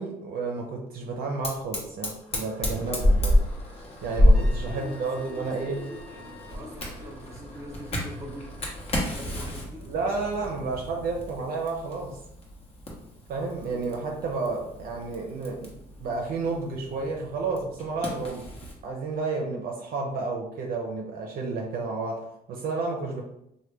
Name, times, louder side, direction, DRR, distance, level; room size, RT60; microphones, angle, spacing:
voice 1, 0.0-3.4 4.0-5.8 9.9-12.2 13.3-18.5 18.8-23.2, right 3 dB, 60° right, 0 dB, 0.5 m, -31 dB
Fire, 1.4-18.8, left 1 dB, 35° left, 0.9 m, -29 dB
Trumpet, 4.3-6.7, left 4 dB, 70° left, 0.8 m, -50 dB
voice 2, 4.5-8.6 9.1-9.9 13.7-14.1, equal, 20° right, -1 dB, 1.0 m, -43 dB
3.2 x 2.1 x 3.2 m, 0.80 s
cardioid pair, 110°, 17 cm